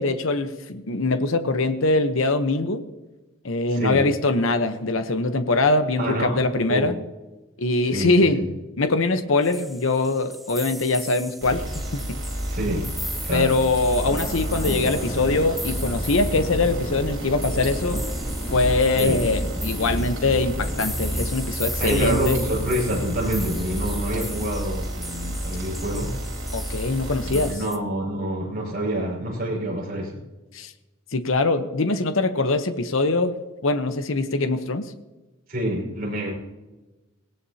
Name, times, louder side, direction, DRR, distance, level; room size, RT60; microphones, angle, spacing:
voice 1, 0.0-2.8 3.4-7.0 7.6-8.4 8.8-12.2 13.3-18.0 18.5-22.4 24.1-24.3 26.5-27.5 30.5-30.7 31.1-33.4 33.6-34.9, left 3 dB, 75° left, 9 dB, 1.0 m, -23 dB
voice 2, 3.7-4.1 6.0-6.9 7.8-8.5 12.5-13.0 13.2-13.6 19.0-19.2 21.8-26.2 27.3-30.2 35.5-36.3, right 1 dB, 45° right, -2 dB, 5.8 m, -27 dB
sound 1, 9.4-27.8, equal, ahead, 0.9 m, -38 dB
sound 2, 11.4-27.5, equal, 65° right, 4.0 m, -30 dB
sound 3, 13.9-21.3, left 1 dB, 40° left, 3.4 m, -34 dB
18.5 x 18.0 x 2.9 m, 1.1 s
head